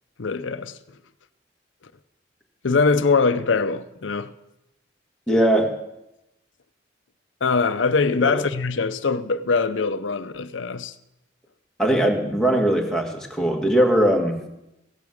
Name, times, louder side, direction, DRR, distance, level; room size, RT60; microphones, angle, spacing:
voice 1, 0.2-0.8 2.6-4.3 7.4-10.9, left 4 dB, 85° left, 0.7 m, -22 dB
voice 2, 5.3-5.7 8.1-8.4 11.8-14.5, right 1 dB, 5° left, 1.8 m, -20 dB
16.0 x 8.6 x 6.4 m
head